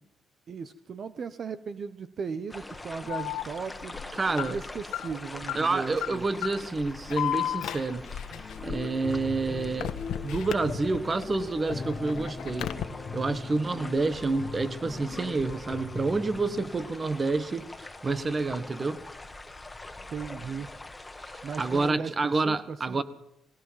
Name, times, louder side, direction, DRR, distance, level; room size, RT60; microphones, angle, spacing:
voice 1, 0.5-4.0 4.4-6.2 20.1-20.7 21.4-23.0, right 5 dB, 50° right, 1.0 m, -37 dB
sound 1, 2.5-21.9, left 2 dB, 15° left, 1.7 m, -44 dB
Alarm, 3.1-11.2 11.6-12.8, left 11 dB, 80° left, 1.4 m, -35 dB
voice 2, 4.2-4.6 5.5-8.1 8.6-10.0 10.2-12.7 13.1-19.0 21.3-23.0, right 3 dB, 30° right, 1.5 m, -28 dB
sound 2, 8.3-16.6, left 4 dB, 40° left, 2.0 m, -39 dB
19.5 x 18.0 x 7.5 m
cardioid pair, 90°, 0 cm